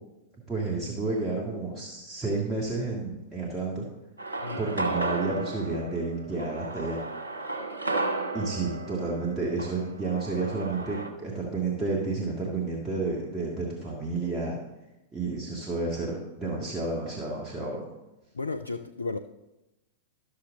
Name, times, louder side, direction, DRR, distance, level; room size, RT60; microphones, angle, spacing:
voice 1, 0.5-3.9 4.6-7.0 8.3-14.6 15.1-17.8, right 3 dB, 15° right, -5 dB, 1.8 m, -31 dB
sound 1, 4.2-11.1, right 2 dB, 80° right, 1.3 m, -34 dB
voice 2, 18.3-19.2, left 3 dB, 80° left, 8 dB, 0.4 m, -33 dB
12.5 x 6.6 x 3.8 m, 0.98 s
figure-of-eight pair, 95°, 0 cm